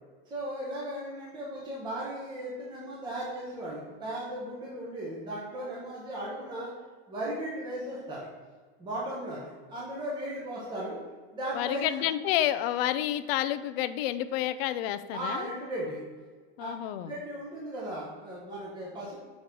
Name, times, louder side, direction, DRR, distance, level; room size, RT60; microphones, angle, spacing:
voice 1, 0.3-6.7 7.1-8.3 8.8-11.0 11.3-12.0 15.1-16.0 16.6-16.7 17.0-19.2, right 1 dB, 15° right, -6 dB, 1.0 m, -36 dB
voice 2, 11.5-15.5 16.6-17.1, left 13 dB, 75° left, 12 dB, 0.5 m, -29 dB
6.4 x 3.1 x 5.1 m, 1.5 s
supercardioid pair, 170°, 30 cm